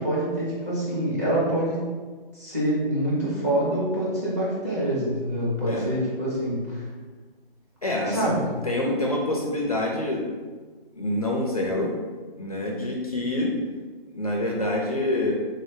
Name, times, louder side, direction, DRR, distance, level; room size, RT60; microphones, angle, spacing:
voice 1, 0.0-1.9 2.3-6.8 8.1-8.4, right 1 dB, 15° right, -8 dB, 0.7 m, -26 dB
voice 2, 7.8-8.3 8.6-10.2 10.9-11.9 12.4-13.5 14.1-15.3, left 1 dB, 40° left, -1 dB, 0.4 m, -26 dB
3.6 x 2.7 x 3.4 m, 1.4 s
hypercardioid pair, 165°, 30 cm